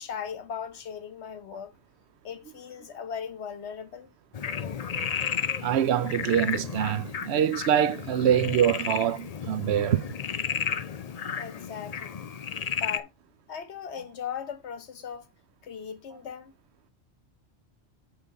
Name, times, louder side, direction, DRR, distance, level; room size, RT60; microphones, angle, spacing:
voice 1, 0.0-1.8 2.2-4.1 11.4-12.3 12.7-13.1 13.5-15.3 15.6-16.5, left 7 dB, 70° left, 1.2 m, -38 dB
Frog, 4.3-13.0, left 7 dB, 45° left, 0.5 m, -33 dB
voice 2, 5.6-10.1, right 10 dB, 70° right, 0.8 m, -24 dB
8.9 x 3.9 x 4.0 m
omnidirectional pair, 1.2 m